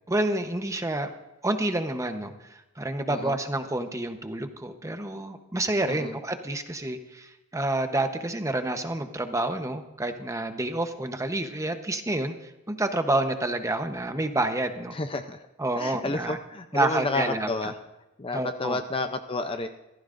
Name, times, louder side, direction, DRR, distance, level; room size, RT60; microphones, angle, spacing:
voice 1, 0.1-1.1 1.4-15.0 15.6-16.4 16.7-17.7 18.3-18.8, right 2 dB, 15° right, 7 dB, 0.9 m, -29 dB
voice 2, 14.9-15.5 15.8-17.7 18.2-19.7, left 2 dB, 25° left, 7 dB, 0.6 m, -30 dB
23.5 x 15.5 x 2.6 m, 0.99 s
head